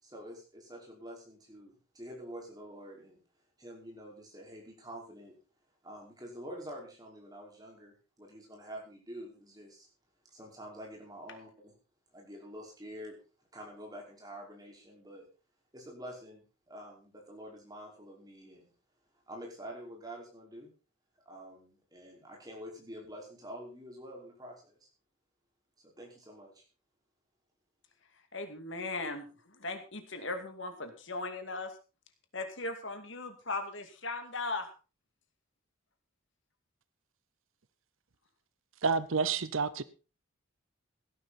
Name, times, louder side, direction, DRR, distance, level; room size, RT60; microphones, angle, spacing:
voice 1, 0.0-3.2 3.6-5.3 5.8-9.9 10.3-11.7 12.1-13.2 13.5-15.3 15.7-18.7 19.3-20.7 21.3-24.9 25.8-26.6, equal, 20° right, 5.2 m, -47 dB
voice 2, 28.3-31.7 32.3-34.7, left 3 dB, 60° left, 2.4 m, -38 dB
voice 3, 38.8-39.8, right 5 dB, 70° right, 0.8 m, -29 dB
16.5 x 11.0 x 4.3 m
head